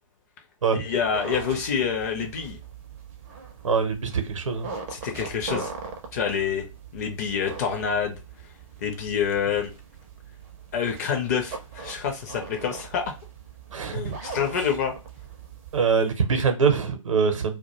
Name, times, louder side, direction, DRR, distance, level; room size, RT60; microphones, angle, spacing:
voice 1, 0.7-2.6 4.9-5.7 6.1-8.2 8.8-9.7 10.7-13.2 13.9-14.9, left 7 dB, 30° left, 0.4 m, -27 dB
sound 1, 0.9-16.2, right 5 dB, 25° right, 0.4 m, -41 dB
voice 2, 3.6-4.7 13.7-14.2 15.7-17.6, right 5 dB, 65° right, 0.7 m, -23 dB
2.2 x 2.1 x 2.9 m
figure-of-eight pair, 125°, 18 cm